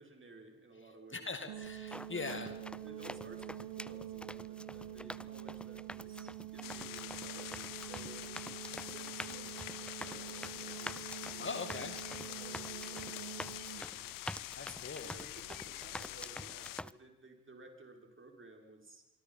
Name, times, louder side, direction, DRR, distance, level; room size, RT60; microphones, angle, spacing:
voice 1, 0.0-1.5 2.1-8.5 8.8-14.2 15.0-19.0, right 2 dB, 35° right, 3 dB, 6.0 m, -56 dB
voice 2, 1.1-2.5 11.4-12.0 14.5-15.1, left 4 dB, 35° left, 8 dB, 2.4 m, -41 dB
sound 1, 1.5-13.8, right 12 dB, 85° right, 1.6 m, -47 dB
sound 2, 1.7-16.9, left 1 dB, 5° left, 0.8 m, -47 dB
sound 3, 6.6-16.8, left 17 dB, 75° left, 0.8 m, -45 dB
26.0 x 24.0 x 5.8 m, 0.94 s
hypercardioid pair, 45°, 34 cm